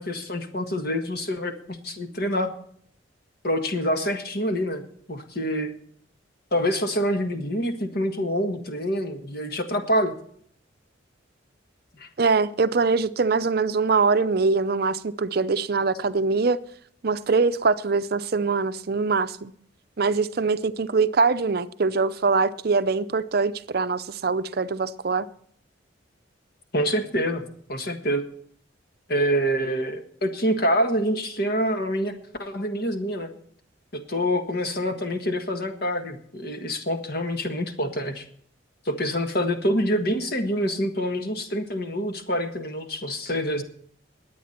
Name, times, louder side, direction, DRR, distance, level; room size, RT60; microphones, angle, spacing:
voice 1, 0.0-2.5 3.4-4.8 5.1-5.7 6.5-10.1 12.0-12.1 26.7-27.4 27.7-28.2 29.1-32.1 32.4-33.3 33.9-38.2 38.8-43.6, equal, 50° left, 1.6 m, -26 dB
voice 2, 12.2-16.6 17.0-19.5 20.0-25.3, right 4 dB, 50° right, 0.5 m, -23 dB
20.5 x 8.5 x 4.4 m
head